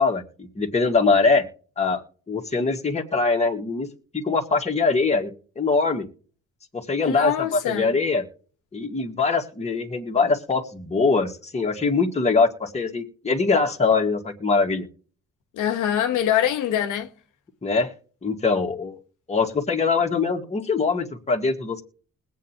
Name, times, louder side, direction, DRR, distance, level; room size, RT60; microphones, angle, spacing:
voice 1, 0.0-1.4 1.8-2.0 2.3-3.9 4.1-6.1 6.7-8.2 8.7-14.9 17.6-17.9 18.2-19.0 19.3-21.8, left 4 dB, 20° left, 1.8 m, -22 dB
voice 2, 7.1-8.0 15.5-17.1, left 10 dB, 85° left, 1.4 m, -24 dB
20.5 x 8.5 x 2.9 m
cardioid pair, 90°, 30 cm